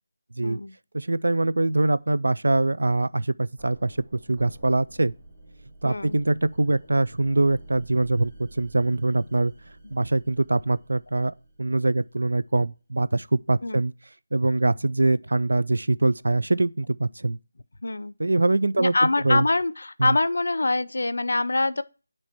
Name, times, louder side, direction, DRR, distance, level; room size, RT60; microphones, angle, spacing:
voice 1, 0.4-0.7 5.8-6.2 13.6-13.8 17.8-18.1 18.8-21.8, left 2 dB, 70° left, 0.5 m, -24 dB
voice 2, 0.9-5.1 5.8-9.5 9.9-13.9 14.3-17.4 18.2-18.9 19.2-19.5 20.0-20.2, right 2 dB, 85° right, 0.4 m, -23 dB
sound 1, 3.6-12.4, right 1 dB, 10° right, 1.7 m, -49 dB
8.6 x 3.2 x 4.4 m
figure-of-eight pair, 180°, 0 cm